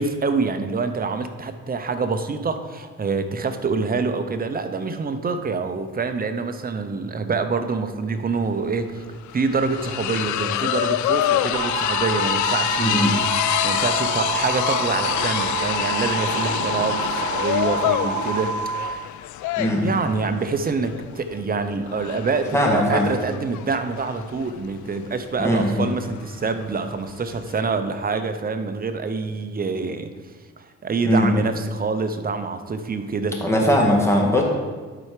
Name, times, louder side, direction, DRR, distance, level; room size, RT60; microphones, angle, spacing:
voice 1, 0.0-9.0 9.3-19.1 19.7-30.1 30.6-33.4, right 4 dB, 30° right, 8 dB, 0.8 m, -26 dB
sound 1, 8.4-8.5 8.7-27.6, left 12 dB, 75° left, 0.4 m, -27 dB
sound 2, 11.5-18.9, right 5 dB, 65° right, 0.9 m, -28 dB
voice 2, 12.8-13.1 19.6-20.0 22.5-23.1 25.4-25.8 31.1-31.3 33.4-34.4, equal, 10° left, -1 dB, 1.8 m, -19 dB
11.5 x 4.4 x 5.0 m, 1.4 s
cardioid pair, 90°, 30 cm